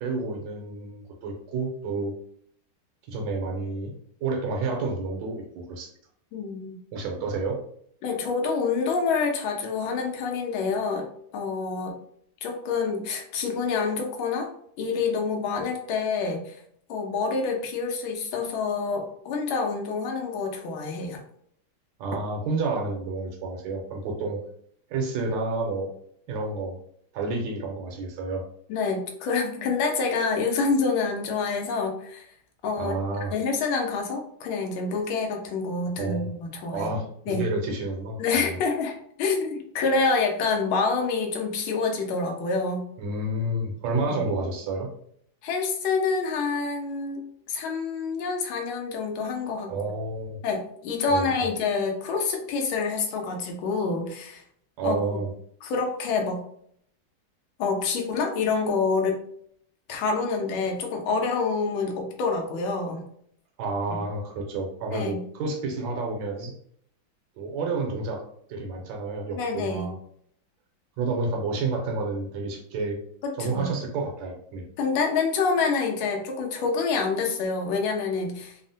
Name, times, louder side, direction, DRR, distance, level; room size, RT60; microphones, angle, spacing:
voice 1, 0.0-2.1 3.1-3.9 4.2-5.9 6.9-7.6 22.0-24.4 24.9-25.9 26.3-26.8 27.1-28.4 32.8-33.3 35.9-36.3 36.7-38.6 43.0-44.9 49.7-50.4 51.1-51.5 54.8-55.3 63.6-66.5 67.4-68.2 68.5-69.9 71.0-73.0 73.4-74.6, right 3 dB, 75° right, 1 dB, 1.3 m, -30 dB
voice 2, 6.3-6.8 8.0-11.1 11.3-11.9 12.4-14.5 14.8-16.5 16.9-21.2 28.7-32.3 32.6-33.0 33.3-36.9 37.3-37.5 38.2-42.9 44.1-44.2 45.4-47.2 47.5-49.7 50.4-54.4 54.8-55.2 55.6-56.4 57.6-59.2 59.9-63.0 63.9-64.0 64.9-65.2 69.3-69.9 73.2-73.7 74.8-78.5, left 4 dB, 85° left, 2 dB, 1.4 m, -27 dB
3.5 x 2.0 x 2.6 m, 0.66 s
omnidirectional pair, 2.2 m